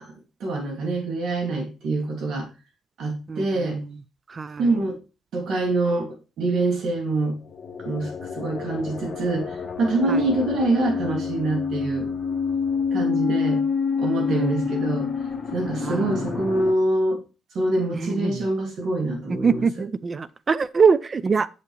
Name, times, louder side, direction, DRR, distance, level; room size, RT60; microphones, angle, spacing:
voice 1, 0.4-2.5 3.0-3.8 4.6-5.0 5.3-7.4 7.8-12.1 12.9-13.6 14.0-15.1 15.5-17.2 17.5-19.7, right 2 dB, 70° right, 2.4 m, -25 dB
voice 2, 3.3-3.9 4.3-4.7 10.1-10.2 14.3-14.7 15.8-16.2 17.9-18.5 19.4-21.5, right 5 dB, 35° right, 0.4 m, -24 dB
sound 1, 7.3-16.7, left 6 dB, 40° left, 1.7 m, -28 dB
6.9 x 6.7 x 3.2 m
cardioid pair, 90°, 0 cm